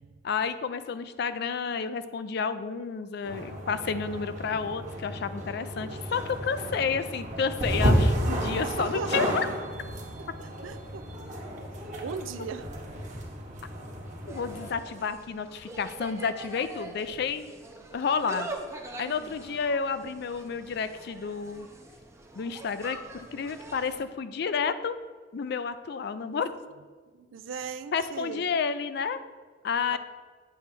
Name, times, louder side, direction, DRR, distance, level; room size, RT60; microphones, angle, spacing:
voice 1, 0.2-9.5 14.3-17.5 17.9-18.5 19.0-21.7 22.3-25.0 25.3-26.6 27.9-29.2 29.6-30.0, left 5 dB, 55° left, 12 dB, 0.4 m, -30 dB
sound 1, 3.2-14.7, equal, 40° right, 1.2 m, -31 dB
voice 2, 8.8-9.3 10.4-11.0 12.0-12.7 27.1-28.4 29.9-30.0, right 5 dB, 85° right, 11 dB, 0.4 m, -37 dB
Insect, 14.3-24.0, right 2 dB, 15° right, 0.6 m, -43 dB
8.4 x 3.3 x 6.0 m, 1.5 s
head